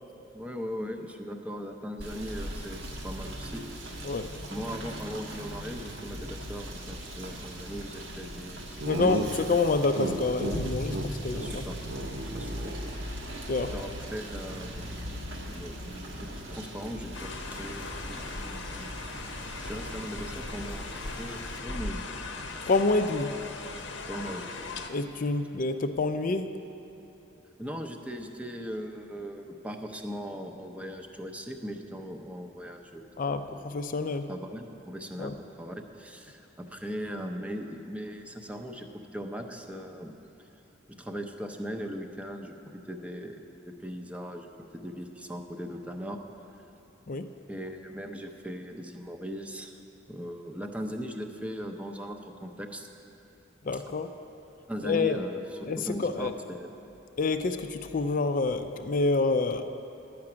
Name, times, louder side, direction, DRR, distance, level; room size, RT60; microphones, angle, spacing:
voice 1, 0.3-3.9 4.5-9.1 11.3-11.7 12.3-12.7 13.7-14.9 15.4-15.7 16.2-17.3 17.6-18.9 19.6-22.1 24.1-24.5 27.6-33.0 33.5-33.7 34.3-40.1 40.9-42.5 42.9-43.4 43.8-46.2 47.5-49.8 50.1-52.9 53.7-53.8 54.7-56.7, equal, 5° right, 4 dB, 0.6 m, -39 dB
Rain / Motor vehicle (road), 2.0-21.6, equal, 90° right, 1.4 m, -39 dB
Laughter, 8.8-10.6 10.9-11.1 11.3-11.5 11.8-13.4, right 2 dB, 70° right, 0.7 m, -34 dB
voice 2, 8.9-11.6 13.5-13.7 22.6-23.3 24.9-26.5 33.2-34.3 35.2-35.3 47.1-47.3 53.6-54.1 54.8-55.2 55.7-56.3 57.2-59.6, left 3 dB, 45° left, 8 dB, 0.4 m, -27 dB
sound 1, 17.1-24.9, left 3 dB, 70° left, 0.8 m, -39 dB
11.5 x 5.9 x 8.6 m, 2.8 s
head